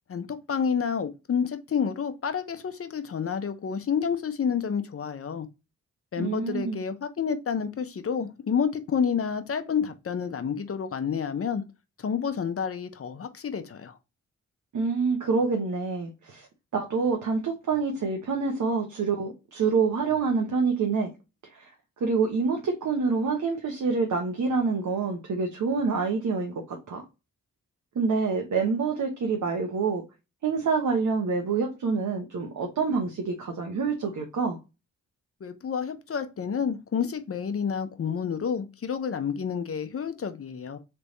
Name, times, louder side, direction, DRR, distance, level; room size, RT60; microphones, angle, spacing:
voice 1, 0.1-5.5 6.1-11.6 12.0-14.0 35.4-40.8, left 7 dB, 45° left, 0.7 m, -29 dB
voice 2, 6.2-6.8 14.7-16.5 16.7-21.1 21.5-21.7 22.0-27.0 27.9-30.0 30.4-34.6, right 4 dB, 70° right, 1.1 m, -27 dB
3.4 x 3.3 x 4.0 m
cardioid pair, 85°, 31 cm